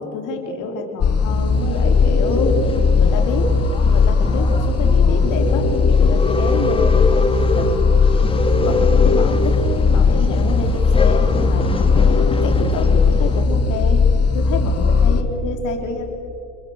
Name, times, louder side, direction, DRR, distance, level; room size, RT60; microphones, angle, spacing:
voice 1, 0.0-2.6 3.0-7.8 8.6-11.9 12.4-14.0 14.3-16.1, left 4 dB, 75° left, 3 dB, 4.2 m, -27 dB
sound 1, 1.0-15.2, left 4 dB, 50° left, 1.8 m, -17 dB
Male speech man speaking / Chatter / Rattle, 1.5-13.4, left 3 dB, 15° left, 1.9 m, -26 dB
29.0 x 22.5 x 6.8 m, 2.5 s
supercardioid pair, 80°, 31 cm